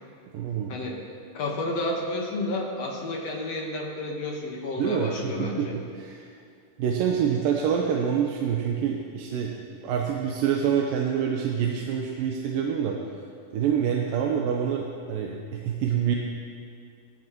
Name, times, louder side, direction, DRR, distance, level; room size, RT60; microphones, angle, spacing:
voice 1, 0.3-0.7 4.8-6.3 6.8-13.0 13.5-16.2, right 8 dB, 85° right, -1 dB, 2.5 m, -26 dB
voice 2, 1.3-5.8, left 2 dB, 55° left, -1 dB, 2.1 m, -31 dB
18.0 x 13.5 x 3.0 m, 2.3 s
omnidirectional pair, 4.0 m